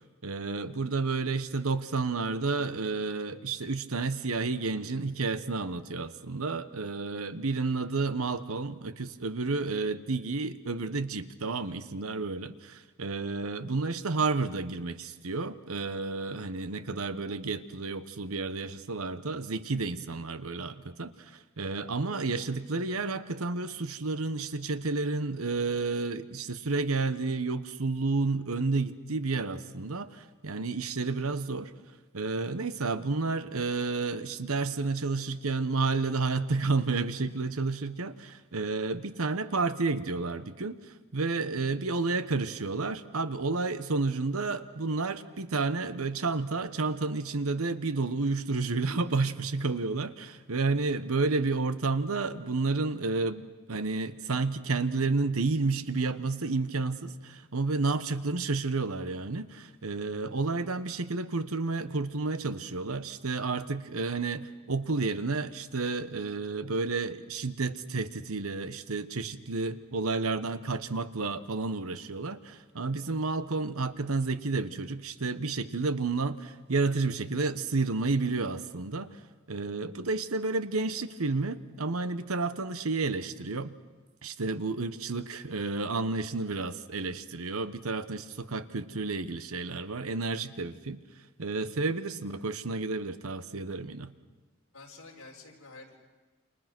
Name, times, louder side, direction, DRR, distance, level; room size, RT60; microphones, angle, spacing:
voice 1, 0.2-31.7 32.1-40.8 41.1-53.4 53.7-79.2 79.5-83.8 84.2-91.0 91.4-94.1, right 3 dB, 75° right, 12 dB, 1.1 m, -31 dB
voice 2, 78.9-79.2 92.3-92.4 94.7-96.0, left 3 dB, 65° left, 0 dB, 4.4 m, -50 dB
29.5 x 27.0 x 6.1 m, 1.3 s
head